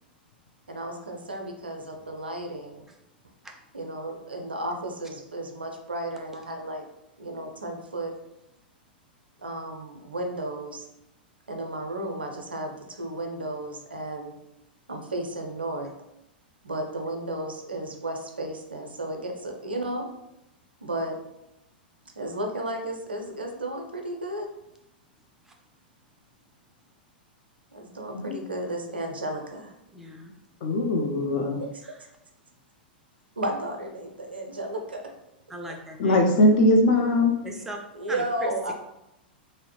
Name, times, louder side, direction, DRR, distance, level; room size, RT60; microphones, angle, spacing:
voice 1, 0.7-2.8 3.7-6.9 7.2-8.1 9.4-10.8 11.5-14.3 14.9-15.9 16.6-20.1 20.8-21.2 22.2-24.5 27.7-29.7 31.7-31.8 33.4-35.0 37.9-38.7, right 1 dB, 85° right, 3 dB, 0.4 m, -33 dB
voice 2, 29.9-30.3 31.8-32.0 35.5-36.2 37.4-37.8 38.1-38.2, right 1 dB, 5° right, 2 dB, 0.4 m, -39 dB
voice 3, 30.6-31.6 36.0-37.3, left 1 dB, 50° left, 3 dB, 0.5 m, -20 dB
2.7 x 2.0 x 2.8 m, 0.86 s
figure-of-eight pair, 95°, 5 cm